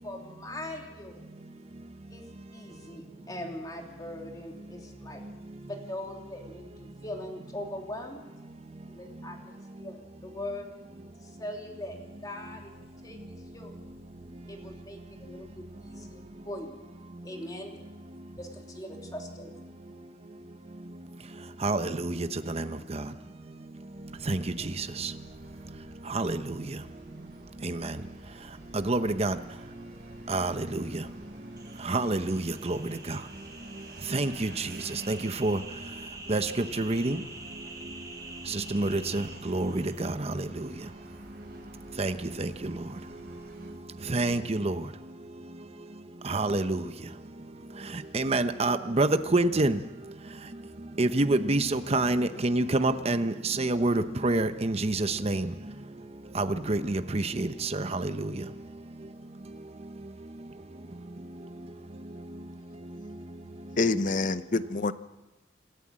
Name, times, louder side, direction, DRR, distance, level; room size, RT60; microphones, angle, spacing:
voice 1, 0.0-1.2 2.1-2.2 2.5-5.2 5.7-8.3 8.9-10.6 11.2-12.7 13.0-13.7 14.5-16.8 17.2-17.7 18.4-19.6, left 1 dB, 20° left, 1 dB, 3.1 m, -41 dB
voice 2, 21.6-22.7 24.3-24.4 25.0-25.1 26.1-26.4 27.6-27.8 28.9-29.4 30.3-30.8 31.9-32.8 34.1-34.5 35.1-35.6 36.3-36.5 36.8-37.2 38.5-40.1 42.0-42.1 42.4-42.5 44.1-44.8 46.3-46.8 48.1-49.8 51.0-55.5 56.3-58.3, right 2 dB, 35° right, 10 dB, 0.9 m, -27 dB
Vehicle, 23.9-43.7, right 1 dB, 55° right, 6.4 m, -52 dB
sound 1, 31.6-40.1, right 3 dB, 20° right, 3.5 m, -46 dB
voice 3, 63.8-64.9, left 3 dB, 45° left, 13 dB, 0.7 m, -26 dB
27.5 x 13.5 x 7.6 m, 1.1 s
head